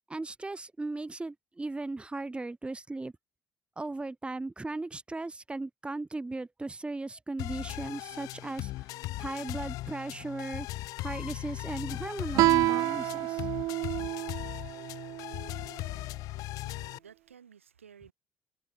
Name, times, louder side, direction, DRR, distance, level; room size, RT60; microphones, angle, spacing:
voice 1, 0.1-3.1 3.8-10.7 11.0-13.5, right 2 dB, 15° right, 1.6 m, -37 dB
sound 1, 7.4-17.0, left 18 dB, 60° left, 1.4 m, -38 dB
Guitar, 12.4-15.6, right 17 dB, 60° right, 0.6 m, -28 dB
voice 2, 16.2-18.1, right 7 dB, 85° right, 4.1 m, -55 dB
figure-of-eight pair, 50°, 7 cm